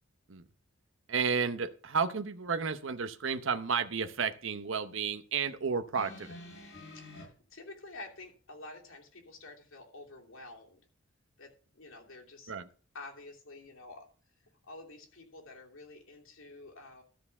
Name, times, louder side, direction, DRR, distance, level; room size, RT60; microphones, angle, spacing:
voice 1, 1.1-6.3 12.5-12.7, right 5 dB, 75° right, 10 dB, 0.8 m, -32 dB
sound 1, 5.9-7.2 8.2-8.3, left 1 dB, 50° left, 7.1 m, -48 dB
voice 2, 6.9-10.9 11.4-12.5 12.9-14.1 14.7-17.0, left 2 dB, 90° left, -1 dB, 2.9 m, -49 dB
13.0 x 4.7 x 7.0 m, 0.40 s
head